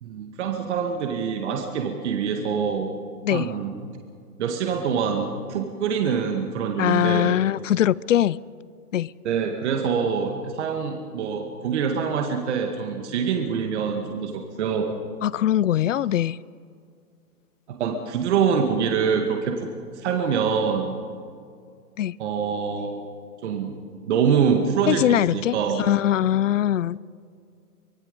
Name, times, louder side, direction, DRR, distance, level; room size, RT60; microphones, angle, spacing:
voice 1, 0.0-3.0 3.3-3.9 4.4-7.4 9.2-15.0 17.7-19.7 19.9-21.0 22.2-23.0 23.4-23.8 24.1-25.8, right 6 dB, 45° right, 3 dB, 2.1 m, -25 dB
voice 2, 6.8-8.4 8.9-9.1 15.2-16.4 22.0-22.1 24.9-27.0, left 11 dB, 55° left, 22 dB, 0.5 m, -22 dB
25.0 x 21.5 x 5.3 m, 2.3 s
hypercardioid pair, 150°, 46 cm